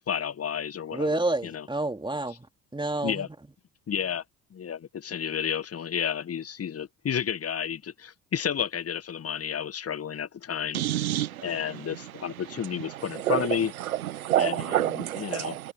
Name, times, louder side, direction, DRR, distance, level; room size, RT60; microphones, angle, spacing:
voice 1, 0.1-1.7 3.0-3.3 3.9-4.2 4.5-10.8 11.4-13.7 14.4-14.6 15.2-15.6, left 8 dB, 35° left, 1.7 m, -31 dB
voice 2, 0.9-2.4 2.7-3.3, right 2 dB, 10° right, 3.3 m, -28 dB
voice 3, 10.7-15.7, right 13 dB, 75° right, 1.2 m, -29 dB
figure-of-eight pair, 50°, 42 cm